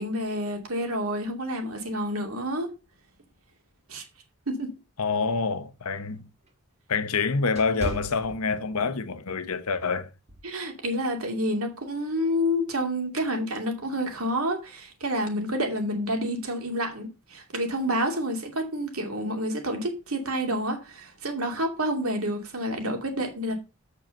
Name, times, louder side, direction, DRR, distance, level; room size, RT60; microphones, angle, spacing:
voice 1, 0.0-2.7 3.9-4.0 4.5-4.7 10.4-23.5, equal, 70° right, 2.6 m, -29 dB
voice 2, 5.0-6.3 6.9-10.1, left 4 dB, 75° left, 1.0 m, -27 dB
sound 1, 5.3-9.0 9.4-9.7 10.3-10.6, right 1 dB, 30° right, 1.8 m, -39 dB
7.8 x 6.7 x 5.3 m
head